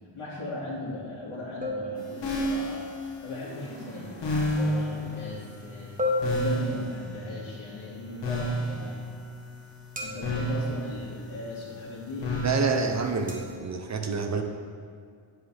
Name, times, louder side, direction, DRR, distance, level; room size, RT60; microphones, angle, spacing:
voice 1, 0.2-5.9 6.2-9.0 10.0-12.3, left 2 dB, 80° left, -8 dB, 2.4 m, -38 dB
sound 1, 1.6-2.7 6.0-7.4 10.0-10.7 13.3-13.6, left 1 dB, 15° right, 1.1 m, -32 dB
sound 2, 2.0-13.5, equal, 60° left, 2.1 m, -33 dB
voice 2, 12.4-14.4, right 4 dB, 35° right, 5 dB, 0.7 m, -28 dB
9.7 x 8.0 x 3.4 m, 2.2 s
wide cardioid pair, 150°, 48 cm